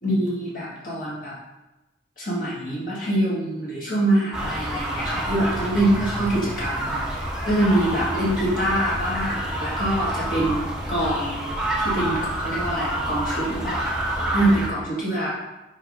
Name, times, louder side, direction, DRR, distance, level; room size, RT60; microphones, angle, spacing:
voice 1, 0.0-1.3 2.2-11.4 11.8-13.9 14.3-15.3, right 1 dB, 50° left, -7 dB, 2.0 m, -24 dB
sound 1, 4.3-14.7, right 1 dB, 5° right, 1.0 m, -28 dB
5.3 x 5.1 x 5.4 m, 1.0 s
head